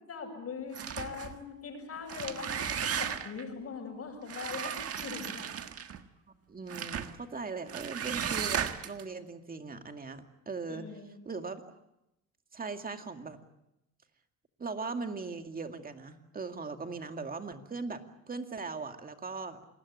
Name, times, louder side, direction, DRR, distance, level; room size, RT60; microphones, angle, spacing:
voice 1, 0.1-5.4 10.7-11.2, left 5 dB, 50° left, -5 dB, 6.9 m, -41 dB
sound 1, 0.7-1.4 2.0-3.4 4.3-6.0 6.7-7.1 7.7-9.0, right 8 dB, 50° right, 1.6 m, -35 dB
voice 2, 6.5-10.8 11.3-11.6 12.5-13.4 14.6-18.0 18.3-19.6, right 4 dB, 30° right, 6 dB, 2.2 m, -39 dB
27.5 x 20.0 x 8.6 m, 0.88 s
cardioid pair, 115°, 30 cm